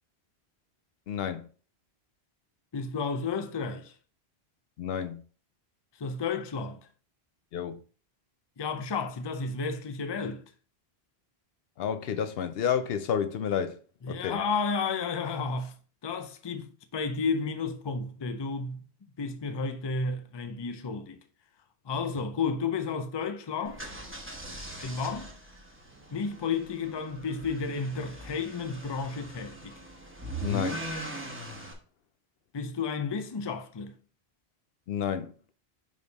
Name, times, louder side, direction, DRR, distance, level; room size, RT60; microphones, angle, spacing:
voice 1, 1.1-1.5 4.8-5.2 7.5-7.8 11.8-13.8 14.1-14.4 30.4-30.8 34.9-35.3, left 8 dB, 70° left, 0.8 m, -30 dB
voice 2, 2.7-3.9 6.0-6.9 8.6-10.4 14.0-15.7 16.0-16.7 16.9-18.8 19.2-21.2 21.8-23.9 24.8-25.3 26.1-29.7 32.5-34.0, left 4 dB, 30° left, 0.5 m, -32 dB
sound 1, 23.6-31.7, right 1 dB, 10° right, 1.0 m, -40 dB
5.2 x 5.0 x 4.0 m
omnidirectional pair, 1.1 m